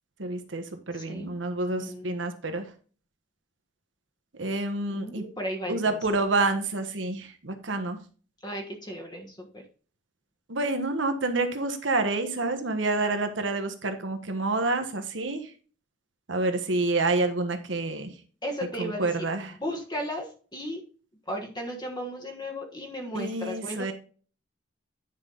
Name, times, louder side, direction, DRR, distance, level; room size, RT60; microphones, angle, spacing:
voice 1, 0.2-2.7 4.4-5.2 5.7-8.0 10.5-15.5 16.3-18.1 18.8-19.5 23.1-23.9, right 2 dB, 80° right, 7 dB, 1.3 m, -28 dB
voice 2, 0.9-1.3 1.8-2.2 4.9-6.0 8.4-9.6 18.4-19.1 19.4-20.8 21.3-23.9, equal, 25° left, 3 dB, 1.4 m, -35 dB
9.7 x 5.3 x 4.0 m, 0.40 s
head